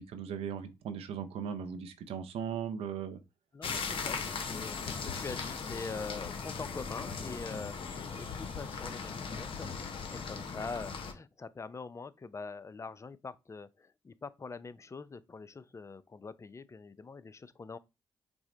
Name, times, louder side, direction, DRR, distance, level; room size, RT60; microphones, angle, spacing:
voice 1, 0.0-3.2, right 7 dB, 75° right, 0.6 m, -38 dB
voice 2, 3.5-9.7 10.1-17.8, left 4 dB, 30° left, 0.5 m, -44 dB
sound 1, 3.6-11.1, left 5 dB, 60° left, 0.8 m, -38 dB
6.1 x 2.1 x 3.8 m
supercardioid pair, 50°, 10 cm